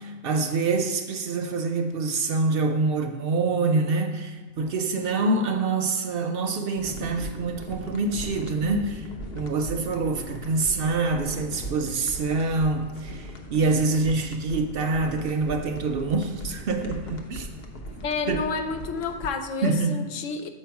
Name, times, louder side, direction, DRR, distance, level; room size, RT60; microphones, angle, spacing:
voice 1, 0.0-9.1 9.4-17.5 18.3-18.5 19.6-20.0, right 3 dB, 60° right, 5 dB, 0.6 m, -26 dB
sound 1, 6.8-19.3, equal, 55° left, 0.9 m, -39 dB
voice 2, 18.0-20.5, left 4 dB, 90° left, 7 dB, 1.0 m, -30 dB
7.3 x 4.5 x 4.6 m, 1.3 s
omnidirectional pair, 1.3 m